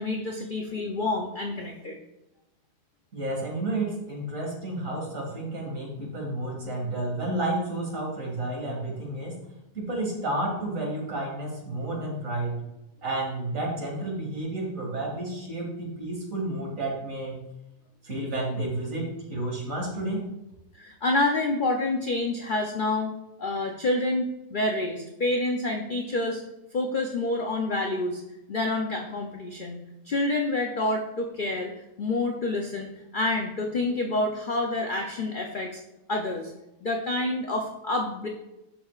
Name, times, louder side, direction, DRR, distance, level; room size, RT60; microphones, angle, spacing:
voice 1, 0.0-2.0 20.7-23.1 23.4-26.4 26.7-28.2 28.5-29.8 30.1-31.7 32.0-35.8 36.1-36.5 36.8-38.3, left 2 dB, 75° left, 2 dB, 0.4 m, -28 dB
voice 2, 3.1-9.4 9.7-12.6 13.0-17.4 18.0-20.2, right 2 dB, 55° right, -2 dB, 2.5 m, -31 dB
11.5 x 4.9 x 2.4 m, 0.93 s
omnidirectional pair, 1.7 m